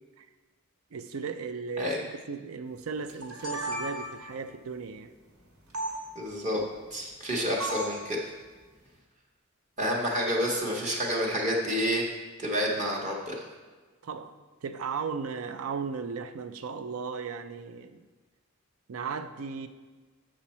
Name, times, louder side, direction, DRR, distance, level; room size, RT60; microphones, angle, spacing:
voice 1, 0.9-5.1 14.0-14.3 14.6-18.0 18.9-19.7, right 5 dB, 70° right, 10 dB, 0.5 m, -36 dB
sound 1, 3.1-4.3 5.7-5.9 7.6-8.0, right 1 dB, 85° right, 1.8 m, -34 dB
voice 2, 6.1-6.6 6.9-8.2 9.8-12.1 12.4-13.4, equal, 35° right, -2 dB, 1.0 m, -29 dB
7.4 x 6.2 x 4.3 m, 1.3 s
head